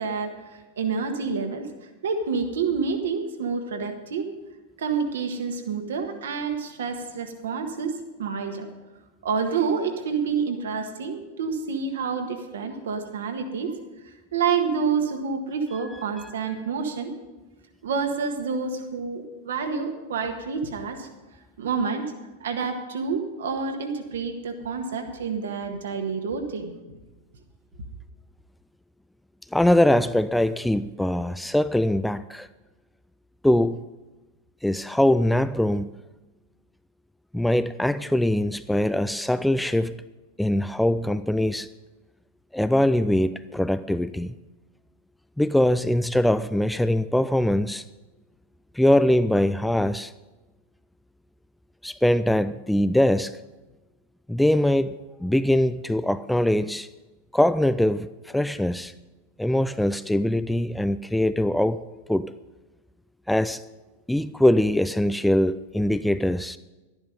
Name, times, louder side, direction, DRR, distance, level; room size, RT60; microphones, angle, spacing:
voice 1, 0.0-1.7 2.0-4.3 4.8-8.7 9.2-13.8 14.0-17.1 17.8-21.1 21.6-22.1 22.4-26.7, right 5 dB, 65° right, 5 dB, 1.6 m, -28 dB
voice 2, 29.5-32.5 33.4-33.8 34.6-35.9 37.3-39.9 40.4-41.7 42.5-44.3 45.4-47.8 48.7-50.1 51.8-53.4 54.3-56.9 57.3-58.9 59.4-61.8 62.1-62.3 63.3-63.6 64.1-66.6, left 1 dB, 5° left, 14 dB, 0.3 m, -22 dB
12.5 x 11.0 x 5.2 m, 1.1 s
figure-of-eight pair, 90°, 0 cm